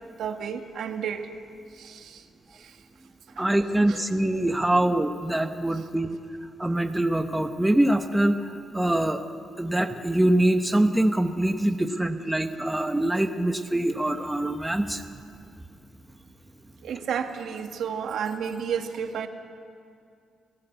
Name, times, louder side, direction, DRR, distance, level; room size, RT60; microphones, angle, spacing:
voice 1, 0.2-1.2 1.8-2.2 3.9-4.0 16.8-19.3, right 7 dB, 65° right, 6 dB, 1.6 m, -31 dB
voice 2, 3.4-6.2 6.6-9.2 9.6-15.0, right 1 dB, 5° right, 6 dB, 0.9 m, -24 dB
30.0 x 17.0 x 8.0 m, 2.4 s
cardioid pair, 150°, 0 cm